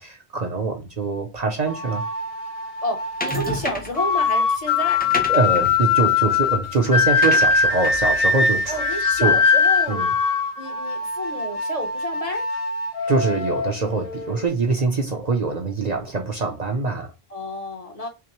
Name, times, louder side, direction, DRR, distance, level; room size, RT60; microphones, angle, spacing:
voice 1, 0.0-2.0 5.3-8.8 9.2-9.4 9.9-10.1 13.1-17.1, right 3 dB, 45° right, 0.7 m, -24 dB
sound 1, 1.7-14.5, left 4 dB, 65° left, 1.1 m, -22 dB
voice 2, 2.8-5.1 8.7-10.1 10.6-12.5 17.3-18.1, left 1 dB, 40° left, 0.8 m, -30 dB
sound 2, 3.2-4.1 4.8-9.5, left 1 dB, 10° left, 0.5 m, -32 dB
5.9 x 2.0 x 2.9 m
omnidirectional pair, 1.1 m